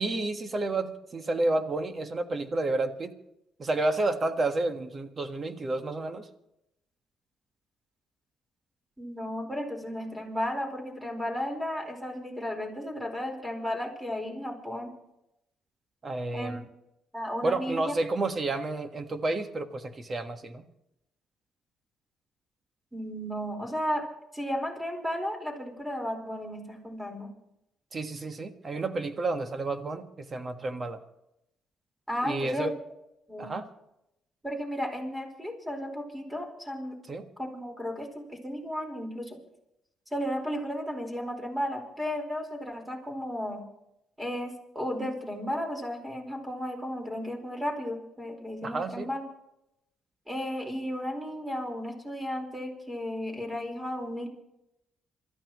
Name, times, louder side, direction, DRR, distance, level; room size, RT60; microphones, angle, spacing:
voice 1, 0.0-3.2 3.6-6.3 16.0-16.6 17.4-20.6 27.9-31.0 32.2-32.7 33.4-33.6 37.1-37.3 48.6-49.1, right 2 dB, 35° right, 7 dB, 1.5 m, -30 dB
voice 2, 9.0-14.9 16.3-16.6 17.1-17.9 22.9-24.1 24.3-27.3 32.1-32.7 33.3-33.5 34.4-37.0 37.4-39.4 40.1-43.6 44.2-49.3 50.3-54.3, equal, 10° right, 2 dB, 4.6 m, -34 dB
27.0 x 14.0 x 3.1 m, 0.83 s
cardioid pair, 90°, 0 cm